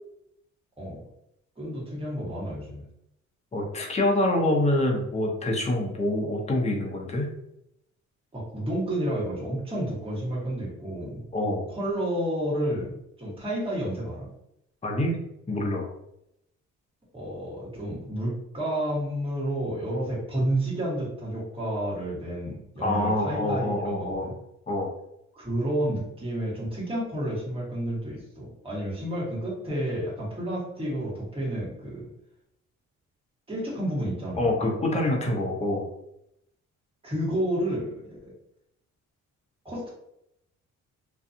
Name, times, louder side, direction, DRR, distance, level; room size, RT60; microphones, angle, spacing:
voice 1, 1.6-2.8 8.3-11.2 11.7-12.9 13.2-14.3 17.1-24.3 25.4-32.1 33.5-34.5 37.0-38.3 39.6-39.9, right 1 dB, 20° right, -6 dB, 1.4 m, -30 dB
voice 2, 3.5-7.3 11.3-11.7 14.8-15.2 15.5-15.9 22.8-24.3 24.7-24.9 34.4-35.8, left 1 dB, 20° left, 0 dB, 0.7 m, -26 dB
2.5 x 2.3 x 2.7 m, 0.80 s
cardioid pair, 90°, 30 cm